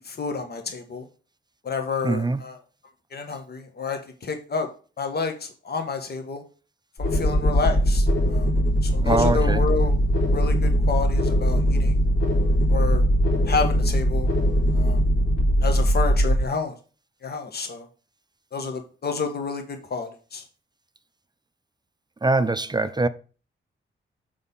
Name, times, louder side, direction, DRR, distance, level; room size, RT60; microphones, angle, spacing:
voice 1, 0.0-1.0 1.6-2.6 3.1-4.7 5.0-6.4 7.0-8.5 8.8-9.9 10.3-12.0 12.7-13.1 13.4-14.3 14.7-15.0 15.6-16.7 17.2-17.8 18.5-20.4, left 5 dB, 50° left, 1.4 m, -29 dB
voice 2, 2.0-2.4 9.0-9.6 22.2-23.1, right 3 dB, 20° right, 0.6 m, -22 dB
sound 1, 7.0-16.4, equal, 65° left, 3.2 m, -21 dB
6.9 x 4.0 x 5.5 m
cardioid pair, 80°, 21 cm